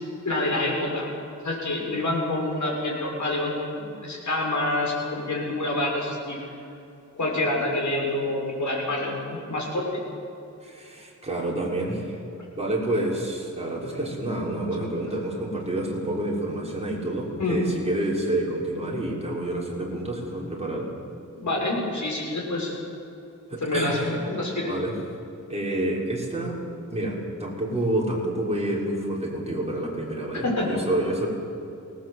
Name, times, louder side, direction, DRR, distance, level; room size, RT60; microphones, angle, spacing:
voice 1, 0.2-1.1 1.4-6.4 7.2-10.0 14.8-14.9 17.4-17.6 21.4-22.7 23.6-24.7 30.4-30.7, left 2 dB, 65° left, -1 dB, 6.6 m, -27 dB
voice 2, 10.6-12.2 12.5-20.9 23.5-24.0 24.7-24.9 25.5-26.6 26.9-31.3, right 1 dB, 20° right, -4 dB, 5.9 m, -28 dB
24.5 x 18.5 x 8.2 m, 2.8 s
wide cardioid pair, 100°, 31 cm